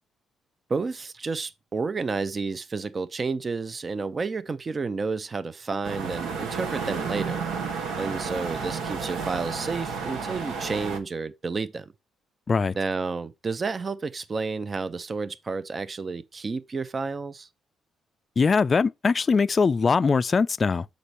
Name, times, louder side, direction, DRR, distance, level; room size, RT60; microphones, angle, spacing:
voice 1, 0.7-7.4 8.0-11.9 12.8-17.5, right 4 dB, 35° right, 0.5 m, -31 dB
sound 1, 5.8-11.0, right 5 dB, 90° right, 1.3 m, -32 dB
voice 2, 18.4-20.9, left 5 dB, 35° left, 0.3 m, -21 dB
6.6 x 5.2 x 4.2 m
cardioid pair, 90°, 0 cm